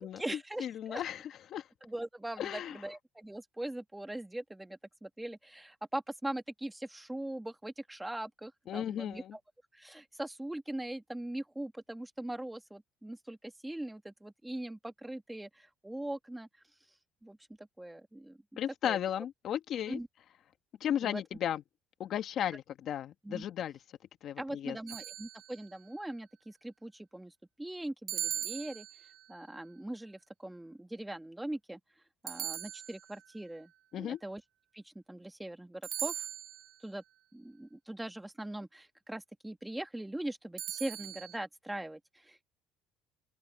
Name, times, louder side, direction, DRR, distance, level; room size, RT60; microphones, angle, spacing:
voice 1, 0.0-1.0 1.8-9.4 9.7-16.5 17.2-18.4 18.8-19.0 19.9-20.1 21.0-21.2 23.2-23.4 24.4-27.3 27.6-31.8 32.2-34.4 34.7-36.3 36.8-37.0 37.3-42.4, right 1 dB, 10° right, 2.0 m, -41 dB
voice 2, 0.6-1.7 2.4-2.8 8.7-9.4 18.6-20.0 20.8-21.6 22.0-23.8 24.2-24.8 33.9-34.2, left 10 dB, 60° left, 1.2 m, -35 dB
sound 1, 24.9-25.8 28.1-29.3 32.3-33.3 35.8-36.8 40.6-41.4, right 11 dB, 60° right, 1.0 m, -39 dB
cardioid pair, 105°, 0 cm